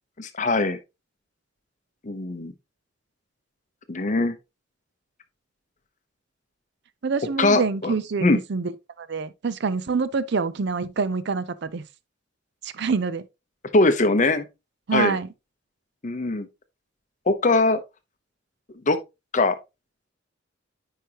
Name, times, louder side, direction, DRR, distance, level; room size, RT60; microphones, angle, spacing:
voice 1, 0.2-0.8 2.0-2.5 3.9-4.4 7.4-7.9 8.2-8.4 13.7-14.5 14.9-15.2 16.0-16.5 17.3-17.8 18.9-19.0 19.3-19.6, left 2 dB, 40° left, 0.8 m, -21 dB
voice 2, 7.0-8.7 9.0-11.8 12.6-13.2 14.9-15.3, right 5 dB, 60° right, 0.5 m, -26 dB
9.1 x 4.9 x 2.9 m
head